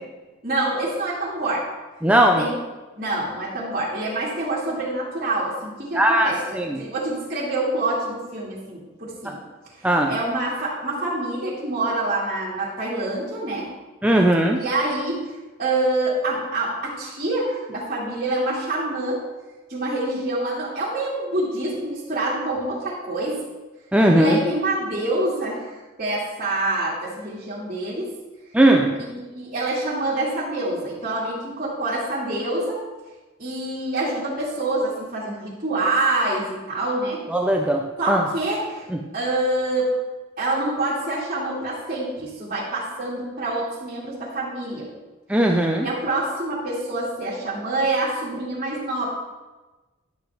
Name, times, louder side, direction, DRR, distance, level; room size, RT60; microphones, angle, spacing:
voice 1, 0.4-1.7 2.4-2.5 2.9-9.4 9.8-13.7 14.6-15.3 15.6-19.2 19.7-23.5 24.1-28.2 29.0-32.8 33.4-37.2 38.0-38.9 39.1-39.9 40.4-44.9 45.8-49.1, right 2 dB, 35° right, -9 dB, 2.4 m, -26 dB
voice 2, 2.0-2.4 6.0-6.8 9.8-10.1 14.0-14.6 23.9-24.4 28.5-28.9 37.3-38.2 45.3-45.9, right 1 dB, 5° right, 1 dB, 0.5 m, -18 dB
11.5 x 7.7 x 3.5 m, 1.2 s
head